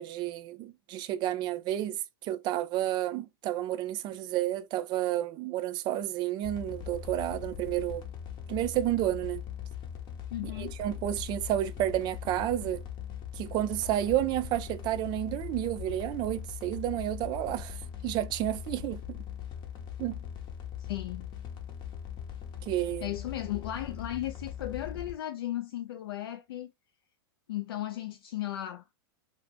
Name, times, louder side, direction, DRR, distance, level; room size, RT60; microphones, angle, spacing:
voice 1, 0.0-8.0 8.5-9.4 10.6-12.8 13.4-17.8 18.0-19.0 20.0-20.2 22.6-23.1, right 13 dB, 35° right, 0.3 m, -31 dB
sound 1, 6.4-25.1, left 9 dB, 40° left, 0.8 m, -41 dB
voice 2, 10.3-10.8 20.8-21.3 23.0-26.7 27.5-28.9, left 13 dB, 80° left, 0.4 m, -36 dB
2.4 x 2.1 x 3.3 m
hypercardioid pair, 110°, 12 cm